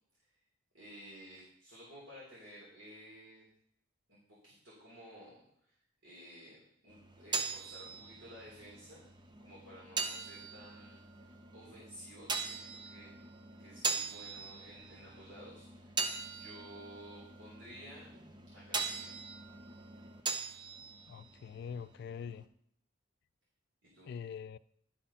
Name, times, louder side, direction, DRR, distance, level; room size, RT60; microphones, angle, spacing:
voice 1, 0.7-3.5 4.1-4.2 4.4-5.8 6.0-9.0 9.4-13.1 13.6-18.1 18.5-19.2 23.8-24.1, equal, 70° right, 3.3 m, -54 dB
sound 1, 6.9-22.4, right 4 dB, 25° right, 0.7 m, -41 dB
voice 2, 21.1-22.5 24.1-24.6, left 7 dB, 55° left, 0.3 m, -43 dB
11.0 x 4.5 x 5.5 m
head